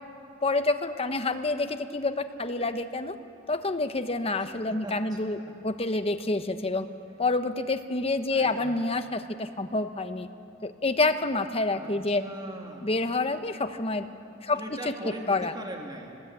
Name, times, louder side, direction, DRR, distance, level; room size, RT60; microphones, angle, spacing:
voice 1, 0.4-3.2 3.5-6.9 7.2-10.3 10.6-12.2 12.8-14.1 14.4-15.5, left 2 dB, 30° left, 8 dB, 1.1 m, -28 dB
voice 2, 4.4-4.9 8.3-8.9 11.7-12.9 14.5-16.2, right 1 dB, 20° right, 1 dB, 2.2 m, -40 dB
25.0 x 19.5 x 9.1 m, 2.6 s
head